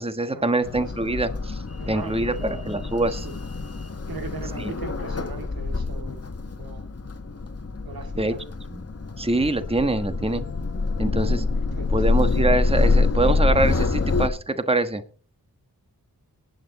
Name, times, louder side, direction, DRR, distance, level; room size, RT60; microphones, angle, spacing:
voice 1, 0.0-3.3 4.6-4.7 8.2-8.3 8.7-8.8 9.2-10.4 11.0-11.4 11.9-15.0, right 2 dB, 15° right, 1.3 m, -24 dB
sound 1, 0.6-14.3, left 3 dB, 40° left, 1.4 m, -26 dB
voice 2, 1.8-2.7 3.1-3.4 4.1-6.9 7.8-8.4 11.5-11.9, right 4 dB, 70° right, 2.4 m, -39 dB
19.0 x 9.4 x 4.2 m
wide cardioid pair, 60°, 37 cm